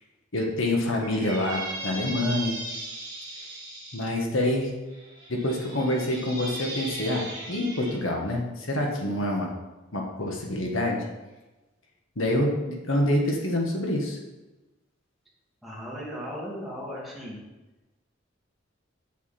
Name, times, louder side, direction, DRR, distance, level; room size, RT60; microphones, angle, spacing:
voice 1, 0.3-2.6 3.9-4.7 5.3-9.5 9.9-11.0 12.2-14.2, left 1 dB, 80° left, 0 dB, 1.7 m, -26 dB
Squeak, 1.0-4.1 4.9-8.0, right 2 dB, 20° right, 2.6 m, -37 dB
voice 2, 15.6-17.4, equal, ahead, -6 dB, 2.6 m, -36 dB
8.2 x 8.2 x 4.4 m, 1.1 s
head